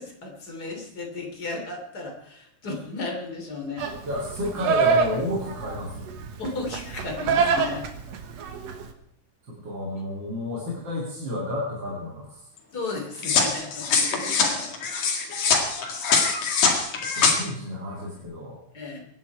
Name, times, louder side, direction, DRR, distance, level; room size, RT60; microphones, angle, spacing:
voice 1, 0.0-3.8 6.4-7.9 12.7-14.7 18.7-19.1, left 3 dB, 30° left, 1 dB, 3.3 m, -34 dB
Livestock farm animals working animals, 3.8-8.9, right 5 dB, 60° right, 2.1 m, -26 dB
voice 2, 4.1-6.1 9.5-12.4 14.3-14.4 17.2-18.6, left 1 dB, 35° right, -3 dB, 2.9 m, -31 dB
sound 1, 13.2-17.3, left 5 dB, 60° left, 3.4 m, -23 dB
23.5 x 10.5 x 4.6 m, 0.74 s
omnidirectional pair, 3.7 m